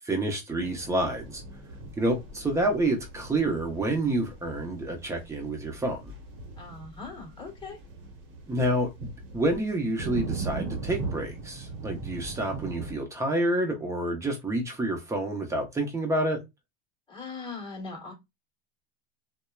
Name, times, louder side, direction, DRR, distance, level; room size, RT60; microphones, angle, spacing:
voice 1, 0.0-1.4 2.0-6.1 8.5-8.9 9.3-16.4, right 1 dB, 10° right, 0.8 m, -28 dB
sound 1, 0.6-12.9, right 3 dB, 40° right, 0.9 m, -39 dB
voice 2, 6.6-7.8 17.1-18.1, left 4 dB, 15° left, 1.4 m, -40 dB
2.7 x 2.1 x 2.3 m
supercardioid pair, 120°, 32 cm